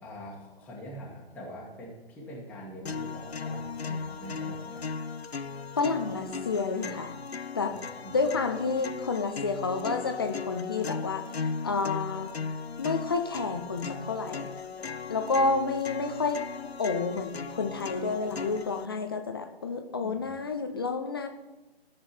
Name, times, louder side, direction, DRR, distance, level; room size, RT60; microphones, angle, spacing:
voice 1, 0.0-4.9 7.6-7.8 8.0-8.2 20.0-20.3, equal, 5° left, -6 dB, 1.5 m, -44 dB
sound 1, 2.9-18.9, left 5 dB, 90° left, 0.6 m, -37 dB
voice 2, 5.8-7.1 7.5-7.7 8.1-11.3 11.6-12.3 12.8-14.5 15.1-16.4 16.8-21.3, left 4 dB, 25° left, 7 dB, 0.5 m, -30 dB
14.0 x 6.8 x 4.4 m, 1.1 s
figure-of-eight pair, 145°, 31 cm